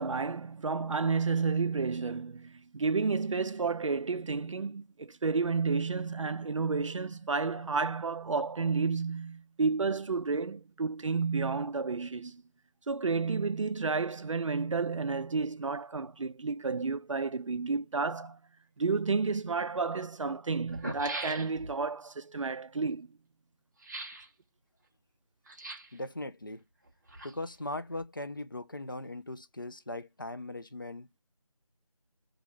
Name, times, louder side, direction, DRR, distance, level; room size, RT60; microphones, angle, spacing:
voice 1, 0.0-12.4 12.9-18.4 18.8-23.1, right 4 dB, 65° right, 0.4 m, -31 dB
sound 1, 19.3-19.4 20.3-20.4 20.6-21.8 23.8-24.3 25.5-26.0 26.8-27.6 27.9-28.0, right 2 dB, 35° right, 0.7 m, -40 dB
voice 2, 25.9-26.6 27.2-31.2, left 2 dB, 40° left, 0.4 m, -39 dB
2.4 x 2.3 x 3.1 m
figure-of-eight pair, 170°, 18 cm